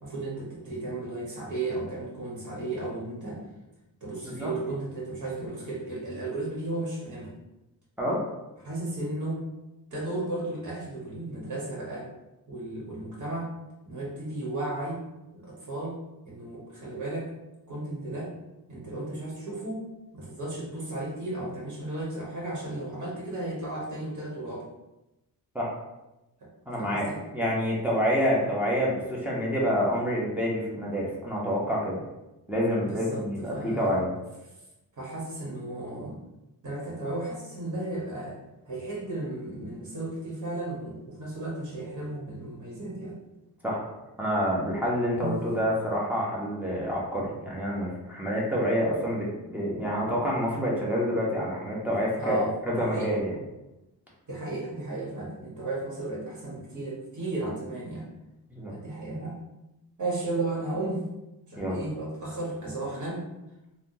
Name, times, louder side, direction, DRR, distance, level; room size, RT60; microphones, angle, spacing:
voice 1, 0.0-3.4 4.0-7.3 8.6-9.5 9.9-12.1 12.5-13.6 13.8-15.1 15.3-17.3 17.7-18.4 18.7-24.6 26.4-26.5 26.8-27.2 32.9-34.0 34.9-36.2 36.6-38.4 38.7-43.2 45.2-45.4 52.1-53.1 54.3-58.1 58.7-59.4 60.0-61.1 61.4-63.3, right 2 dB, 50° right, -5 dB, 1.5 m, -34 dB
voice 2, 26.7-32.0 32.5-34.1 43.6-43.9 44.2-52.4 52.7-53.3 58.5-58.7 61.6-61.9, equal, 5° right, -6 dB, 0.9 m, -27 dB
3.3 x 2.3 x 2.8 m, 0.98 s
cardioid pair, 80°, 39 cm